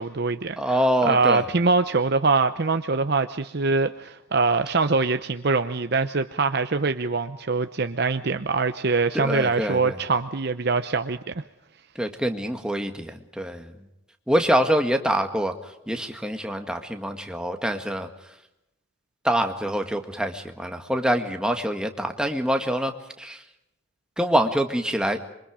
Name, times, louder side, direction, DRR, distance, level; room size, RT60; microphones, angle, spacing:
voice 1, 0.0-0.8 1.0-11.2, right 3 dB, 55° right, 9 dB, 0.8 m, -23 dB
voice 2, 0.6-1.4 9.1-10.0 12.0-13.7 14.3-15.5 15.9-18.1 19.2-23.4 24.2-25.2, equal, 5° right, 5 dB, 1.8 m, -25 dB
27.0 x 24.0 x 5.0 m, 0.85 s
head